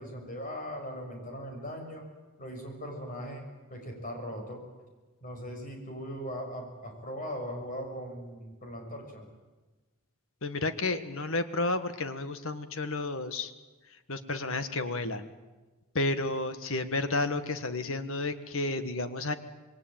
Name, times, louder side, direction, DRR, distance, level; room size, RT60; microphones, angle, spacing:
voice 1, 0.0-2.0 2.4-3.4 3.7-4.6 5.2-9.3, equal, 35° left, 2 dB, 6.2 m, -39 dB
voice 2, 10.4-13.5 13.9-15.3 15.9-19.3, left 2 dB, 60° left, 11 dB, 1.7 m, -31 dB
27.0 x 21.5 x 9.0 m, 1.2 s
head